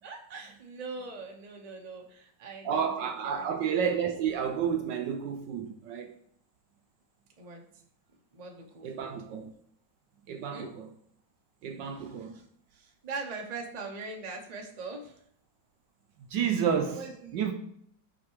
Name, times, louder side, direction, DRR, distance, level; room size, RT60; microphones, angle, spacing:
voice 1, 0.0-3.8 7.4-7.6 8.3-9.2 10.5-10.7 11.8-12.4 12.7-15.2 16.9-17.5, right 3 dB, 30° right, 0.8 m, -42 dB
voice 2, 2.6-6.1 8.8-9.5 10.3-10.9 11.6-12.4 16.3-17.0 17.3-17.5, right 7 dB, 70° right, 1.2 m, -30 dB
5.9 x 5.5 x 4.7 m
omnidirectional pair, 2.2 m